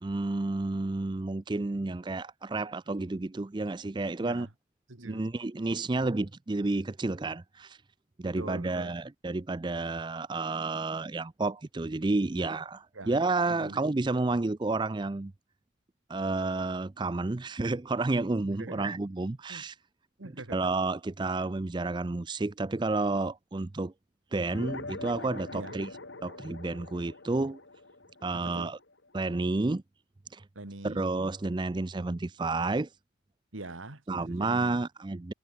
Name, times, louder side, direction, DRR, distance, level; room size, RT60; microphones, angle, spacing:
voice 1, 0.0-4.5 5.0-7.8 8.2-15.3 16.1-19.7 20.5-23.9 24.3-25.9 26.2-27.6 28.2-28.8 29.1-29.8 30.3-30.4 30.8-32.9 34.1-35.3, right 3 dB, 25° right, 0.4 m, -30 dB
voice 2, 4.2-4.5 4.9-5.3 8.2-9.0 12.9-13.2 13.6-13.8 18.4-19.0 19.5-19.6 20.2-20.6 25.5-25.8 28.4-28.8 30.6-31.1 33.5-34.8, right 2 dB, 85° right, 2.1 m, -43 dB
sound 1, 24.5-29.3, left 2 dB, 65° left, 2.6 m, -43 dB
head